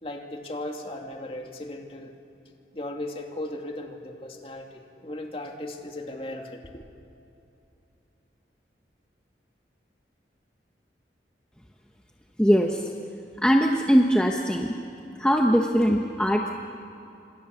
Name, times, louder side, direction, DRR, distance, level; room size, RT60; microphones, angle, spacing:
voice 1, 0.0-2.2 2.7-6.8, left 1 dB, 30° left, 2 dB, 2.5 m, -37 dB
voice 2, 12.4-12.8 13.4-14.7 15.2-16.5, equal, 5° left, 1 dB, 1.1 m, -21 dB
28.5 x 27.0 x 7.1 m, 2.8 s
head